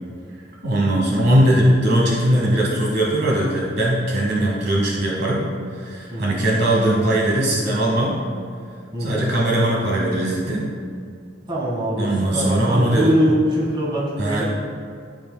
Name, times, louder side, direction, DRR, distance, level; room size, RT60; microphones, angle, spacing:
voice 1, 0.6-5.4 5.8-8.2 9.0-10.7 12.0-13.1 14.2-14.4, right 1 dB, 60° right, -3 dB, 1.1 m, -20 dB
voice 2, 6.1-6.4 8.9-9.3 11.5-14.4, equal, 25° right, -5 dB, 1.7 m, -23 dB
12.5 x 5.2 x 2.2 m, 2.2 s
head